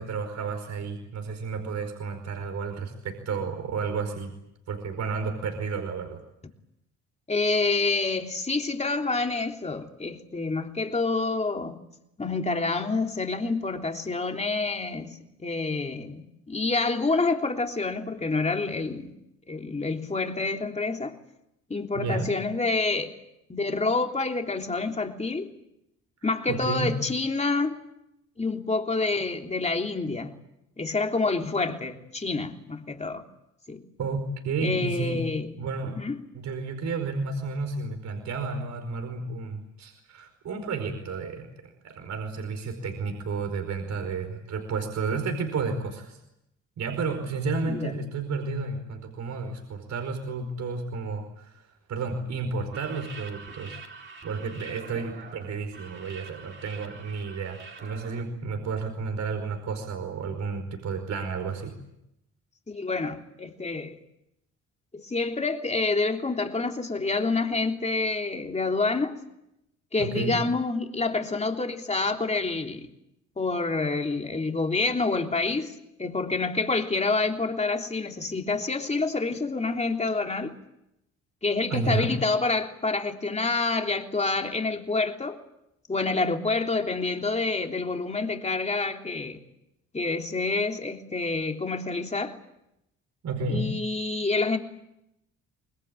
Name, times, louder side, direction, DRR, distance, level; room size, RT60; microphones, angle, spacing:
voice 1, 0.0-4.3 4.7-6.2 21.9-22.3 26.5-27.0 34.0-35.3 35.6-36.0 36.3-46.2 46.8-53.8 54.2-61.7 70.0-70.4 81.7-82.2 93.2-93.7, right 4 dB, 65° right, 4.9 m, -31 dB
voice 2, 7.3-11.8 12.2-19.1 19.5-21.1 21.7-23.2 23.5-25.5 26.2-27.8 28.4-30.4 30.8-33.2 33.7-33.8 34.6-35.6 35.9-36.2 47.6-47.9 62.7-63.9 64.9-69.2 69.9-72.9 73.4-75.7 76.0-80.5 81.4-85.4 85.9-89.4 89.9-92.4 93.5-94.6, left 3 dB, 20° left, 3.3 m, -28 dB
sound 1, 52.6-58.2, right 4 dB, 40° right, 4.1 m, -45 dB
26.0 x 21.0 x 9.1 m
cardioid pair, 90°, 30 cm